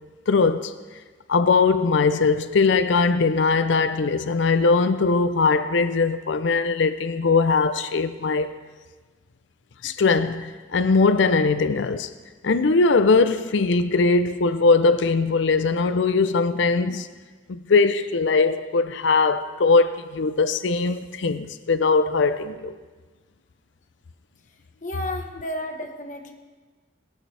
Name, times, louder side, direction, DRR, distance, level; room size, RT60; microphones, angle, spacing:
voice 1, 0.3-0.7 1.3-8.5 9.8-12.1 12.4-17.1 17.5-22.7, left 4 dB, 75° left, 0.5 m, -20 dB
voice 2, 24.8-26.3, left 1 dB, 40° left, 1.2 m, -32 dB
18.0 x 12.5 x 3.3 m
head